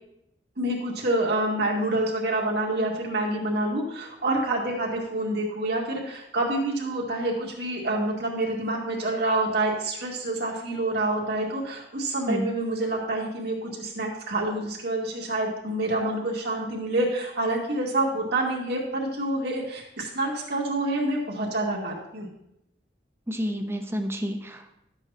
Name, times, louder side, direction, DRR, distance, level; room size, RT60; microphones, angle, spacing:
voice 1, 0.6-22.3, right 2 dB, 65° right, -1 dB, 2.1 m, -27 dB
voice 2, 23.3-24.8, equal, 15° right, 5 dB, 0.8 m, -29 dB
12.5 x 8.3 x 2.9 m, 0.81 s
head